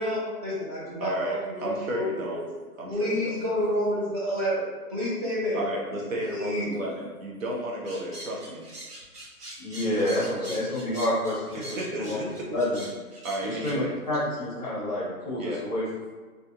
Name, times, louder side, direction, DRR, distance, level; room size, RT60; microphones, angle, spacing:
voice 1, 0.0-2.1 2.3-2.4 2.9-4.6 4.9-5.6 6.2-6.8, equal, 25° right, -10 dB, 1.0 m, -29 dB
voice 2, 1.0-2.4 2.8-3.1 5.5-8.7 9.8-11.0 11.5-12.5 13.2-13.9 15.4-15.6, right 1 dB, 60° right, -2 dB, 0.7 m, -33 dB
sound 1, 7.8-13.7, right 1 dB, 90° right, 1.1 m, -42 dB
voice 3, 9.6-12.8 13.4-15.8, left 1 dB, 25° left, -9 dB, 0.7 m, -29 dB
2.5 x 2.2 x 2.7 m, 1.4 s
hypercardioid pair, 160°, 46 cm